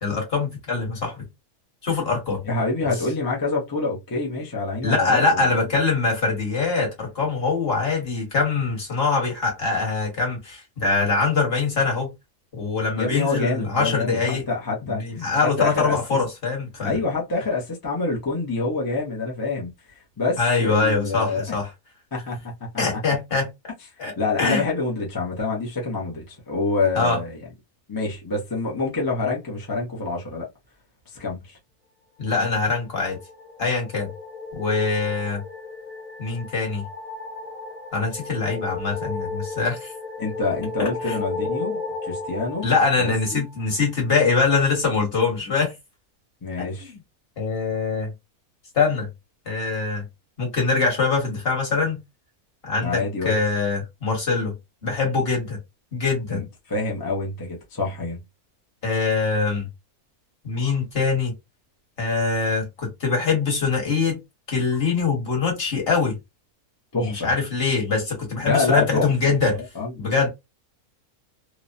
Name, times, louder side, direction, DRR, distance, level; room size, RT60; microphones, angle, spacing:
voice 1, 0.0-1.3 1.8-2.4 4.8-12.1 12.5-14.4 14.8-17.0 20.4-21.7 22.8-23.5 24.0-24.1 24.4-24.6 26.9-27.2 32.2-33.2 33.6-34.1 34.5-35.4 36.2-36.8 37.9-39.9 41.0-41.2 42.6-45.7 46.6-47.0 47.4-48.1 48.7-49.1 49.4-50.0 50.4-52.0 52.6-54.5 54.8-55.6 55.9-56.4 58.8-59.7 60.4-61.3 62.0-64.2 64.5-66.2 67.0-69.6 70.0-70.3, left 4 dB, 45° left, 1.4 m, -23 dB
voice 2, 2.4-5.6 13.0-15.0 15.6-16.0 16.8-19.7 20.2-21.6 22.1-22.8 24.2-27.4 27.9-30.5 31.2-31.6 40.2-42.7 43.0-43.4 46.4-46.9 52.8-53.4 56.3-58.2 66.9-67.3 68.4-69.1 69.6-70.2, left 3 dB, 25° left, 0.4 m, -26 dB
sound 1, 32.8-44.1, left 3 dB, 10° left, 0.9 m, -35 dB
3.0 x 2.1 x 2.5 m
omnidirectional pair, 1.6 m